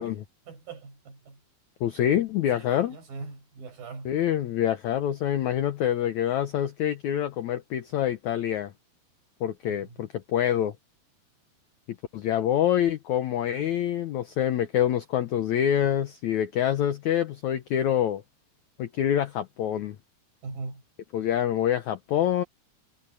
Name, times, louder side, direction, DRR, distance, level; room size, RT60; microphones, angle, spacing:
voice 1, 0.5-1.4 2.5-4.1 9.7-10.0 20.4-20.8, right 4 dB, 60° right, 8.0 m, -41 dB
voice 2, 1.8-3.0 4.0-8.7 9.4-10.7 12.1-18.2 18.8-20.0 21.1-22.4, left 10 dB, 85° left, 1.6 m, -26 dB
omnidirectional pair, 4.7 m